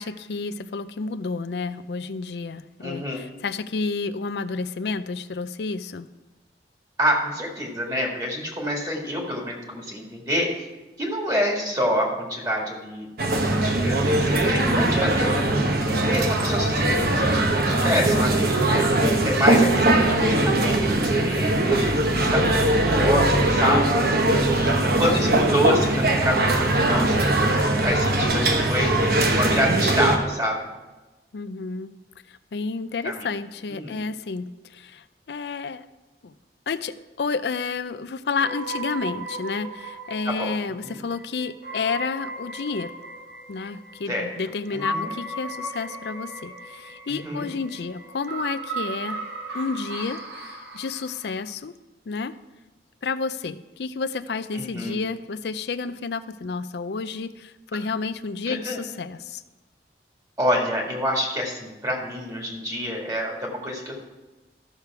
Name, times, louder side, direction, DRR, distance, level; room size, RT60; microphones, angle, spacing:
voice 1, 0.0-6.1 31.3-31.9 32.5-35.9 36.2-36.3 36.7-42.9 43.5-49.3 49.5-51.7 52.1-52.3 53.0-59.4, left 4 dB, 75° left, 13 dB, 0.5 m, -30 dB
voice 2, 2.8-3.2 7.0-10.5 11.0-13.1 13.5-15.4 16.1-30.6 33.0-33.3 33.7-34.0 40.3-40.5 40.8-41.0 44.1-44.3 44.7-45.1 47.1-47.5 54.5-55.0 58.5-58.8 60.4-64.0, equal, 20° right, -1 dB, 1.8 m, -27 dB
sound 1, 13.2-30.2, right 1 dB, 60° right, 1.0 m, -21 dB
sound 2, 38.4-51.5, right 2 dB, 80° right, 1.8 m, -36 dB
13.0 x 6.6 x 4.7 m, 1.1 s
head